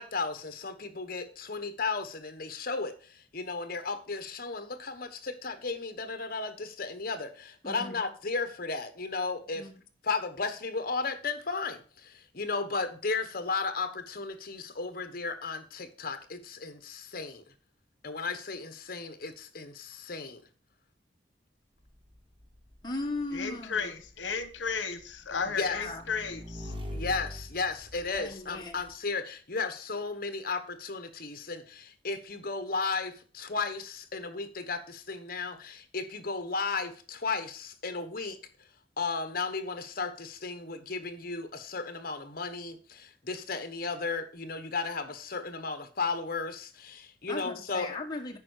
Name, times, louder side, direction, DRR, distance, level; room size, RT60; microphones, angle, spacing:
voice 1, 0.0-9.7 10.0-17.4 18.0-20.4 25.3-25.9 26.9-38.4 39.0-47.9, left 4 dB, 50° left, 1.2 m, -34 dB
voice 2, 7.6-8.0 9.5-9.8 22.8-24.0 25.7-26.0 28.1-28.8 47.3-48.4, left 2 dB, 25° left, 1.4 m, -37 dB
Motorcycle / Engine, 21.8-28.9, left 1 dB, 30° right, 1.5 m, -44 dB
voice 3, 23.3-26.7, left 5 dB, 85° left, 1.0 m, -34 dB
8.7 x 5.4 x 6.5 m
head